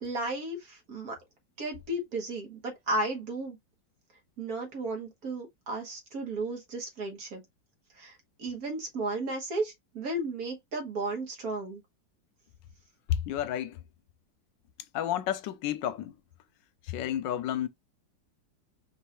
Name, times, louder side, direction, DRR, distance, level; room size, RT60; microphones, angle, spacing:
voice 1, 0.0-1.2 1.6-3.6 4.4-7.4 8.0-11.8, right 2 dB, 55° right, 1.8 m, -34 dB
voice 2, 13.1-13.8 14.9-16.2 16.8-17.7, left 11 dB, 85° left, 1.3 m, -31 dB
5.4 x 2.6 x 3.0 m
omnidirectional pair, 2.0 m